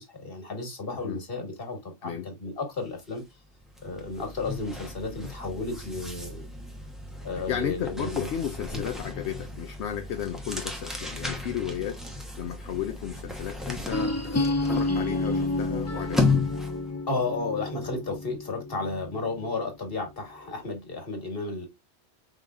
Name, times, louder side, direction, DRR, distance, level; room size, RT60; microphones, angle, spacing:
voice 1, 0.0-3.2 3.8-6.4 7.2-8.3 8.7-8.8 17.1-21.7, left 3 dB, 55° left, 1.8 m, -33 dB
sound 1, 3.0-3.2 3.5-16.9, left 3 dB, ahead, 0.9 m, -34 dB
voice 2, 7.3-16.3, left 9 dB, 80° left, 0.9 m, -34 dB
sound 2, 13.9-19.7, left 2 dB, 25° left, 0.3 m, -30 dB
5.2 x 3.9 x 2.4 m
omnidirectional pair, 1.1 m